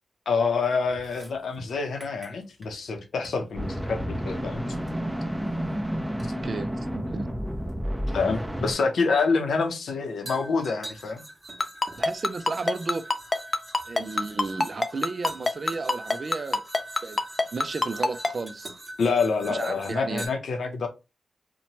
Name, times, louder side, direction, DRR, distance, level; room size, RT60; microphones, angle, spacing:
voice 1, 0.3-4.6 8.1-11.2 19.0-20.9, left 4 dB, 85° left, 0.6 m, -27 dB
sound 1, 0.9-2.9 3.2-3.5 4.9-5.0 6.2-6.4 7.7-7.8 10.3-20.3, right 1 dB, 25° right, 1.2 m, -43 dB
sound 2, 3.5-8.7, equal, 5° right, 0.7 m, -30 dB
voice 2, 6.3-7.3 12.0-13.1 13.9-16.6 17.0-17.2 17.5-18.7 19.5-20.2, right 3 dB, 55° right, 0.3 m, -33 dB
Ringtone, 11.6-18.3, left 3 dB, 35° left, 0.3 m, -23 dB
2.9 x 2.1 x 2.7 m
cardioid pair, 70°, 0 cm